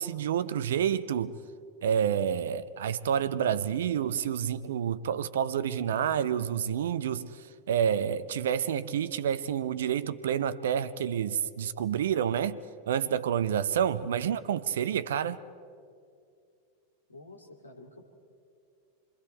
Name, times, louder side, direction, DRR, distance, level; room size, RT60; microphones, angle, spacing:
voice 1, 0.0-1.4 1.8-7.3 7.7-12.6 12.9-15.4, right 8 dB, 60° right, 0.7 m, -28 dB
voice 2, 17.1-18.0, left 1 dB, 80° left, 2.7 m, -49 dB
26.5 x 23.0 x 4.5 m
figure-of-eight pair, 90°, 0 cm